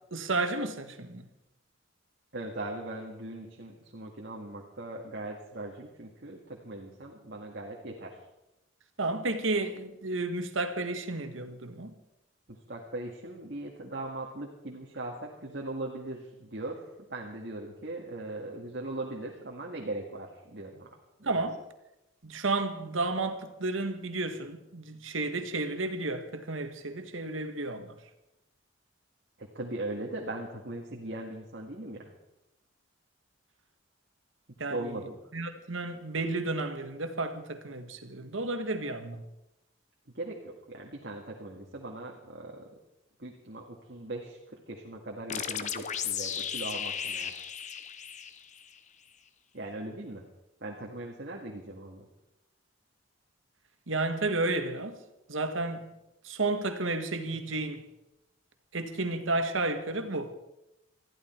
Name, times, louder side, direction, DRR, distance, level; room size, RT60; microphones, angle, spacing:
voice 1, 0.1-1.2 9.0-11.9 21.2-21.6 22.2-27.9 34.6-35.0 35.3-39.2 53.9-54.9 55.3-55.9 56.2-57.8 58.7-60.3, right 2 dB, 90° right, 1.7 m, -32 dB
voice 2, 2.3-8.2 12.5-16.8 17.1-20.9 21.2-21.5 29.4-32.1 34.7-35.2 40.1-42.6 43.2-47.3 49.5-50.2 50.6-52.1, right 2 dB, 60° right, 2.0 m, -39 dB
sound 1, 45.3-48.8, left 8 dB, 40° left, 0.9 m, -35 dB
20.5 x 14.0 x 4.5 m
head